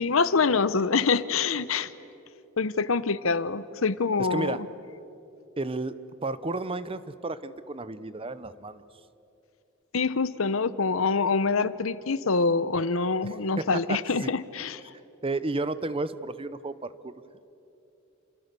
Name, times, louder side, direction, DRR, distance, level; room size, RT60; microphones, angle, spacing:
voice 1, 0.0-1.9 2.6-4.6 9.9-14.8, left 4 dB, 70° left, 15 dB, 0.8 m, -25 dB
voice 2, 4.2-4.6 5.6-8.8 13.2-14.3 15.2-17.1, right 2 dB, 25° right, 14 dB, 0.8 m, -32 dB
29.0 x 27.5 x 6.9 m, 2.9 s
head